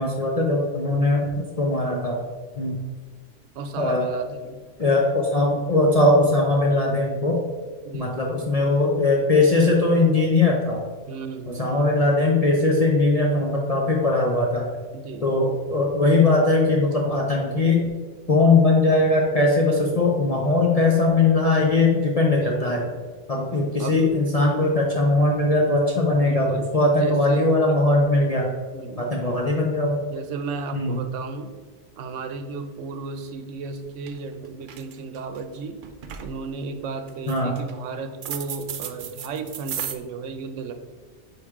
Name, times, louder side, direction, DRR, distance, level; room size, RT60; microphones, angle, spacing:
voice 1, 0.0-2.2 2.6-2.8 3.8-4.1 4.8-7.4 7.9-10.8 11.6-14.6 15.2-17.9 18.3-22.8 23.3-28.5 29.0-30.0 30.7-31.0 37.3-37.5, left 2 dB, 40° left, -2 dB, 0.6 m, -20 dB
voice 2, 3.5-4.6 7.8-8.3 11.1-11.8 14.9-15.4 22.3-23.0 23.8-24.1 26.2-26.7 27.0-27.5 28.7-29.1 30.0-31.5 32.0-35.8 36.2-40.7, right 4 dB, 80° right, 8 dB, 1.0 m, -34 dB
sound 1, 33.7-33.8 34.1-34.3 34.6-35.4 35.8-36.3 37.1-37.7 38.2-39.9, right 8 dB, 60° right, 0.5 m, -34 dB
9.2 x 3.2 x 3.6 m, 1.5 s
omnidirectional pair, 1.2 m